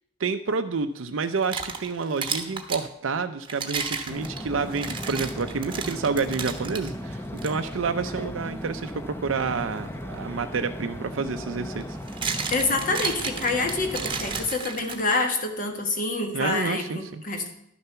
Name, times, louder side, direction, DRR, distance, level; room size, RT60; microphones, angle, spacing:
voice 1, 0.2-12.0 16.3-17.2, right 4 dB, 85° right, 7 dB, 0.6 m, -29 dB
sound 1, 1.2-2.9 3.4-6.9 7.4-7.5 8.2-8.4 10.5-10.6 11.8-15.3, right 5 dB, 25° right, 1.1 m, -33 dB
sound 2, 4.1-14.5, equal, 10° left, 0.7 m, -36 dB
voice 2, 12.5-17.5, left 3 dB, 45° left, 4 dB, 1.6 m, -27 dB
11.5 x 6.9 x 5.6 m, 0.78 s
head